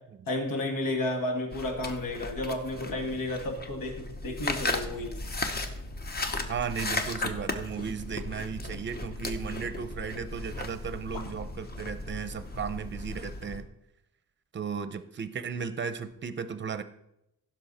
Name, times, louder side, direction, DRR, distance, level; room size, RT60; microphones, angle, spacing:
voice 1, 0.3-5.1 11.1-11.2, left 1 dB, 85° left, 4 dB, 2.1 m, -32 dB
sound 1, 1.5-13.6, left 2 dB, 30° left, 0.9 m, -36 dB
voice 2, 6.5-13.6 14.5-16.8, right 6 dB, 35° right, 12 dB, 0.6 m, -35 dB
15.5 x 6.0 x 4.2 m, 0.84 s
wide cardioid pair, 170°, 33 cm